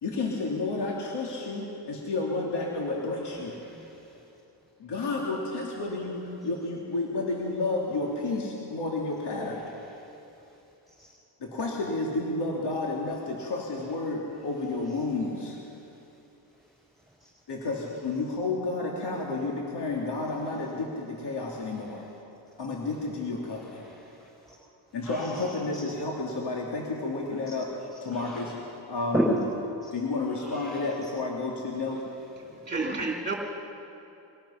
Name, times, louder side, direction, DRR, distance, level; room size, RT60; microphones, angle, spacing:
voice 1, 0.0-3.6 4.8-9.6 11.4-15.6 17.5-22.0 22.6-23.8 24.9-27.7 28.0-28.5 28.9-29.2 29.9-32.0, left 3 dB, 60° left, -2 dB, 3.1 m, -31 dB
voice 2, 3.6-4.1 9.3-9.9 11.0-11.1 21.6-22.1 23.4-24.5 25.0-25.5 28.1-28.5 29.1-29.2 29.8-29.9 30.3-30.9, right 1 dB, ahead, -5 dB, 6.5 m, -36 dB
voice 3, 32.4-33.3, right 3 dB, 20° right, -1 dB, 2.9 m, -31 dB
25.5 x 18.5 x 5.9 m, 2.8 s
cardioid pair, 90°, 47 cm